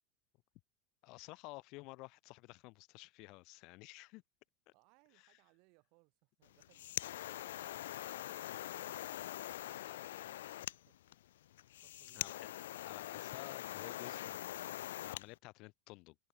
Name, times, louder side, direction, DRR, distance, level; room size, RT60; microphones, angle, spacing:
voice 1, 1.0-4.2 5.1-5.4 9.6-10.0 12.1-12.5 12.8-14.5 15.0-16.2, left 24 dB, 55° left, 1.5 m, -53 dB
voice 2, 4.7-11.2 11.8-12.3, right 30 dB, 60° right, 7.6 m, -72 dB
sound 1, 6.5-15.3, left 13 dB, 80° left, 0.4 m, -43 dB
hypercardioid pair, 105°, 0 cm